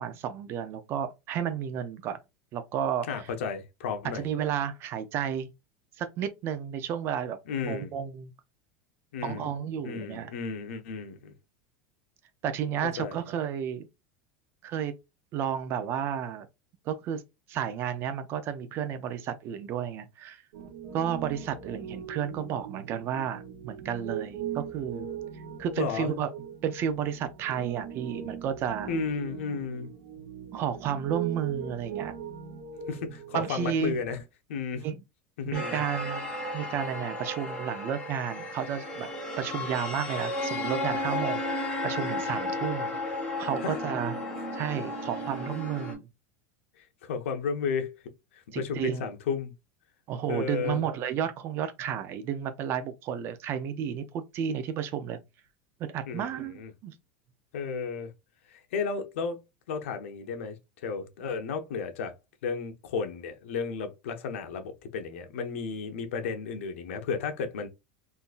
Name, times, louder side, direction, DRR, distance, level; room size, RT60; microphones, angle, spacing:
voice 1, 0.0-2.2 2.5-3.1 4.1-5.5 6.0-7.4 7.6-8.3 9.2-10.3 12.4-13.9 14.6-14.9 15.3-16.5 16.9-17.2 17.5-20.4 20.9-25.1 25.6-26.3 26.6-28.9 30.5-32.1 33.3-34.0 34.8-35.0 35.4-39.1 39.4-44.1 44.5-46.1 48.5-49.1 50.1-55.2 55.8-56.9, right 8 dB, 35° right, 0.5 m, -32 dB
voice 2, 3.1-4.2 7.5-7.9 9.1-9.5 9.8-11.3 13.0-13.2 25.8-26.1 28.9-29.9 32.9-34.2 34.5-34.8 35.4-35.8 43.6-43.8 47.0-47.9 48.5-49.5 50.3-50.8 56.1-56.7 57.5-58.1 58.7-59.4 59.7-60.6 60.8-62.1 62.4-67.7, left 5 dB, 90° left, 0.9 m, -33 dB
Piano, 20.5-34.2, right 8 dB, 85° right, 1.1 m, -40 dB
sound 1, 35.5-45.9, left 1 dB, 15° left, 1.6 m, -33 dB
3.8 x 2.6 x 2.4 m
supercardioid pair, 155°, 7 cm